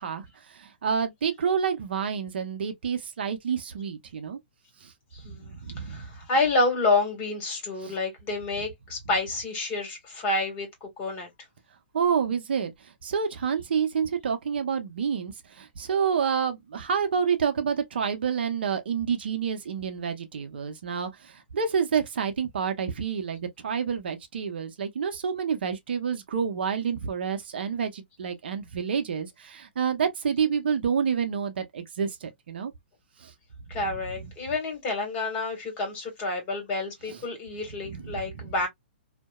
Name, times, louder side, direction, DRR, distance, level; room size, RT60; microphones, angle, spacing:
voice 1, 0.0-4.4 4.8-4.9 5.2-6.1 7.8-7.9 11.9-32.7 33.2-33.3 34.2-34.3 37.1-37.2 37.8-38.5, right 6 dB, 65° right, 0.7 m, -29 dB
voice 2, 5.1-11.3 33.7-38.7, left 2 dB, 30° left, 1.6 m, -29 dB
2.7 x 2.1 x 2.2 m
hypercardioid pair, 135°, 6 cm